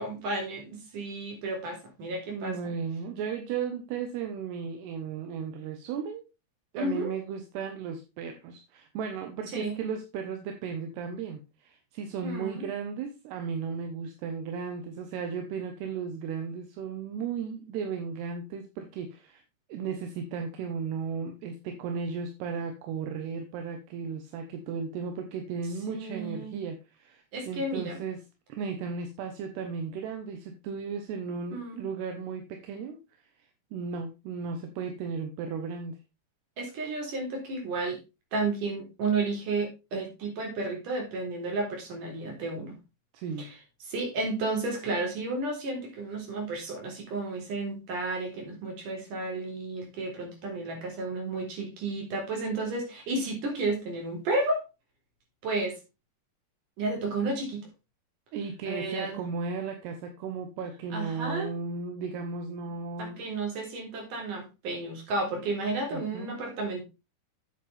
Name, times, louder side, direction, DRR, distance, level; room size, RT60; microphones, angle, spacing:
voice 1, 0.0-2.6 6.8-7.1 9.5-9.8 12.2-12.7 25.9-26.6 27.3-28.0 31.5-31.9 36.6-38.0 38.3-42.7 43.4-43.5 43.9-54.6 55.4-55.8 56.8-57.6 58.7-59.2 60.9-61.5 63.0-66.8, right 2 dB, 50° right, 1 dB, 5.2 m, -32 dB
voice 2, 2.3-6.2 6.7-19.4 19.7-28.2 28.5-33.3 33.7-36.0 43.1-43.5 58.3-63.2 65.9-66.4, right 5 dB, 80° right, 6 dB, 3.2 m, -35 dB
9.6 x 8.4 x 3.4 m, 0.26 s
omnidirectional pair, 4.8 m